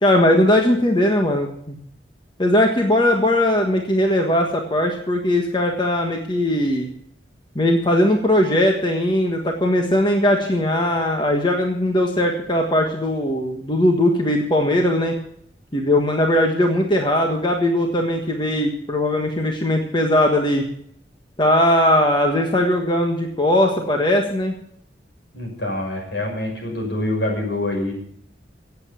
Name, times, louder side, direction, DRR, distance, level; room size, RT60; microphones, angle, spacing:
voice 1, 0.0-1.8 2.4-6.9 7.5-15.1 15.7-20.6 21.4-24.6, left 1 dB, 25° left, 2 dB, 1.5 m, -19 dB
voice 2, 25.3-27.9, left 1 dB, 70° left, 1 dB, 6.0 m, -25 dB
16.5 x 8.2 x 7.0 m, 0.69 s
head